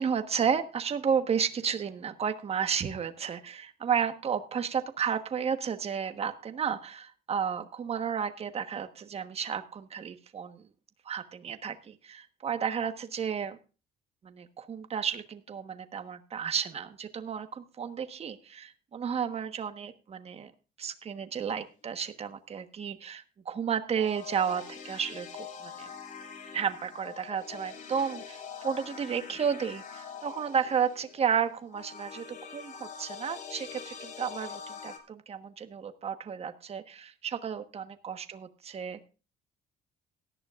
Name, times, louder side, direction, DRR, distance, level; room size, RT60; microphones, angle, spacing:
voice 1, 0.0-10.7 11.0-13.6 14.2-20.5 20.8-25.9 26.5-39.0, right 7 dB, 35° right, 9 dB, 1.3 m, -32 dB
sound 1, 23.9-35.0, left 7 dB, 45° left, 2.7 m, -44 dB
17.5 x 12.0 x 2.5 m, 0.33 s
cardioid pair, 110°, 17 cm